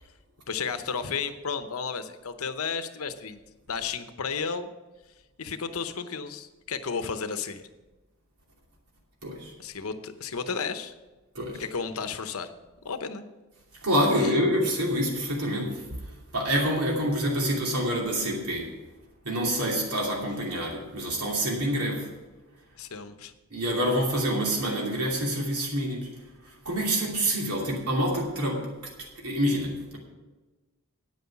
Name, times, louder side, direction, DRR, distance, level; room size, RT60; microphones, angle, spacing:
voice 1, 0.5-3.4 3.7-4.7 5.4-7.6 9.6-10.9 11.6-12.5 12.8-13.3 14.2-14.3 22.8-23.3, left 5 dB, 75° left, 10 dB, 0.8 m, -33 dB
voice 2, 9.2-9.5 11.3-11.6 13.8-16.0 16.3-18.7 19.2-22.1 23.5-26.1 26.4-30.0, equal, 90° right, -2 dB, 2.7 m, -27 dB
9.4 x 9.1 x 5.8 m, 1.2 s
head